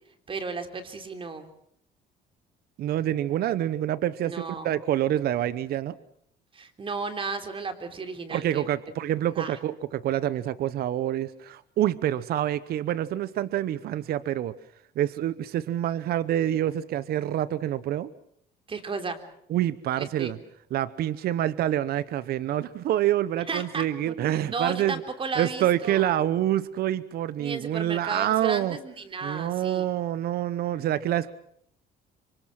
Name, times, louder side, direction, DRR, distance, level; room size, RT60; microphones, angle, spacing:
voice 1, 0.3-1.5 4.2-4.7 6.5-8.7 9.2-9.6 18.7-19.2 20.0-20.3 23.5-26.1 27.4-29.9, right 4 dB, 30° right, 7 dB, 3.5 m, -34 dB
voice 2, 2.8-6.0 8.3-14.6 15.0-18.1 19.5-20.4 20.7-25.0 25.4-28.8 29.2-31.3, right 12 dB, 65° right, 16 dB, 0.9 m, -27 dB
27.0 x 24.0 x 6.1 m, 0.69 s
cardioid pair, 110°, 17 cm